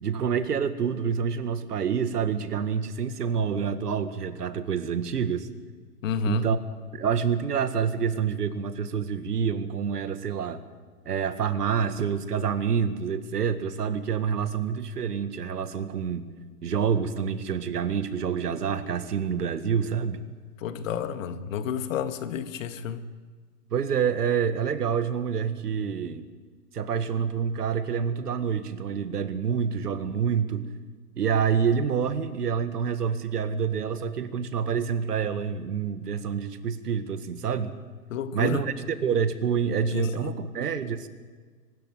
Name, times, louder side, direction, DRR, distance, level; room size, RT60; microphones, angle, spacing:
voice 1, 0.0-5.5 6.2-6.6 6.9-10.6 11.1-16.2 16.6-20.2 23.7-26.2 26.7-30.7 31.2-37.7 38.3-41.1, right 7 dB, 80° right, 1.9 m, -27 dB
voice 2, 6.0-6.5 20.6-23.1 38.1-38.6 39.9-40.4, left 7 dB, 55° left, 1.8 m, -31 dB
23.5 x 13.0 x 9.2 m
hypercardioid pair, 130°, 47 cm